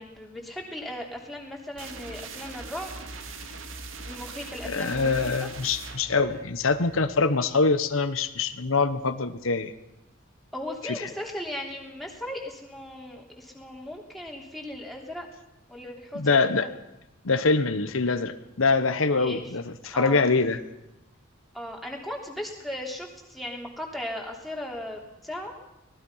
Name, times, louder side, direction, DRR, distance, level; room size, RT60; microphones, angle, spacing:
voice 1, 0.0-2.9 4.1-5.3 10.5-15.3 15.7-16.7 19.2-19.5 19.9-20.3 21.5-25.5, left 1 dB, ahead, -1 dB, 3.4 m, -37 dB
sound 1, 1.8-7.4, right 3 dB, 80° right, 2.2 m, -41 dB
voice 2, 4.6-9.7 10.8-10.9 16.1-16.7 17.2-20.6, left 4 dB, 85° left, 10 dB, 1.2 m, -24 dB
24.5 x 19.0 x 5.7 m, 0.94 s
head